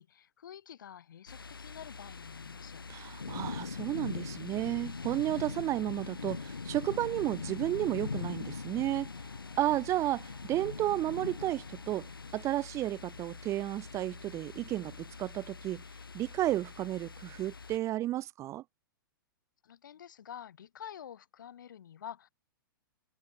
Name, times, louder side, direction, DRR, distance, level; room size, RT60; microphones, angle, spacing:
voice 1, 0.0-2.9 19.6-22.3, left 9 dB, 60° left, 6.8 m, -48 dB
sound 1, 1.3-17.8, left 4 dB, 80° left, 1.2 m, -42 dB
voice 2, 2.9-9.1 9.6-15.8 16.1-18.6, right 14 dB, 25° right, 0.9 m, -32 dB
sound 2, 4.8-13.4, right 4 dB, 80° right, 7.9 m, -62 dB
figure-of-eight pair, 110°, 12 cm